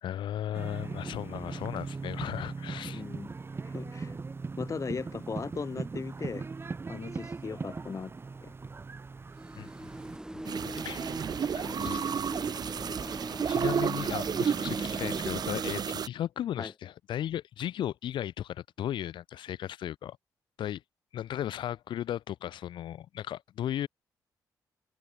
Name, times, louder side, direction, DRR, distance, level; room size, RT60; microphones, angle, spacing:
voice 1, 0.0-3.0 4.0-4.2 9.6-9.7 10.3-10.4 10.7-11.1 11.5-12.0 13.5-20.2 20.6-20.8 21.1-23.9, left 11 dB, 75° left, 3.6 m, -36 dB
sound 1, 0.5-10.2, right 4 dB, 30° right, 0.6 m, -39 dB
voice 2, 2.9-3.4 3.6-4.1 4.6-6.5 6.9-8.1 8.4-8.5 11.8-12.2 16.6-16.7, left 5 dB, 40° left, 1.3 m, -38 dB
sound 2, 9.3-15.8, right 1 dB, 10° right, 3.0 m, -40 dB
sound 3, 10.4-16.1, right 7 dB, 55° right, 1.0 m, -31 dB
supercardioid pair, 60°, 8 cm